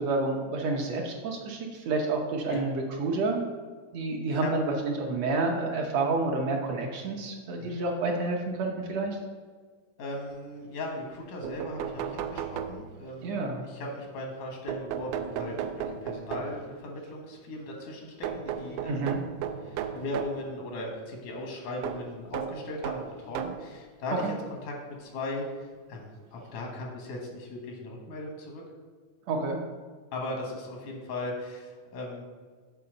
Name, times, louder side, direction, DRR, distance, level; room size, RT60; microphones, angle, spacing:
voice 1, 0.0-3.4 3.9-9.2 13.2-13.7 18.9-19.2 24.2-24.3 29.3-29.6, right 3 dB, 70° right, 1 dB, 1.8 m, -29 dB
voice 2, 10.0-19.2 19.6-24.3 24.6-28.6 30.1-32.2, left 1 dB, 90° left, 0 dB, 2.9 m, -38 dB
sound 1, 11.1-11.2 11.4-13.2 14.7-16.7 18.2-20.4 21.8-23.7 24.6-24.7 26.0-26.1 26.4-26.5, right 8 dB, 85° right, 2.0 m, -35 dB
6.9 x 4.7 x 6.4 m, 1.5 s
omnidirectional pair, 3.4 m